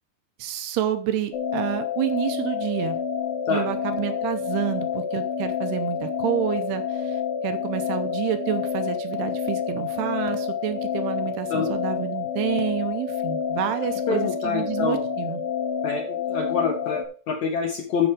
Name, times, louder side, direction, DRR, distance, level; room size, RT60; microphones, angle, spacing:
voice 1, 0.4-3.0 3.5-15.4, right 12 dB, 80° right, 9 dB, 2.7 m, -29 dB
sound 1, 1.3-17.1, left 7 dB, 75° left, 4.7 m, -28 dB
voice 2, 14.1-15.1 15.8-18.1, left 5 dB, 55° left, 1 dB, 2.3 m, -26 dB
12.0 x 5.7 x 5.0 m, 0.40 s
omnidirectional pair, 5.0 m